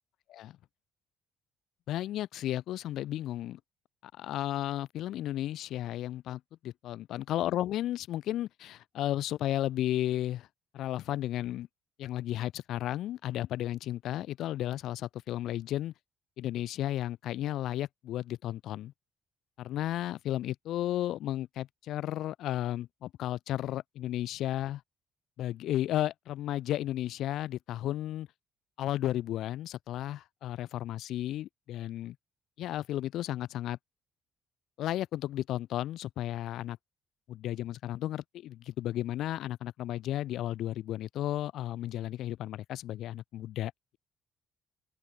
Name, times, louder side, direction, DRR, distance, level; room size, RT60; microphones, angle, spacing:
voice 1, 1.9-3.6 4.0-10.5 10.7-11.7 12.0-15.9 16.4-18.9 19.6-24.8 25.4-28.3 28.8-32.2 32.6-33.8 34.8-36.8 37.3-43.7, left 13 dB, 75° left, 3.3 m, -33 dB
open air
cardioid pair, 130°, 0 cm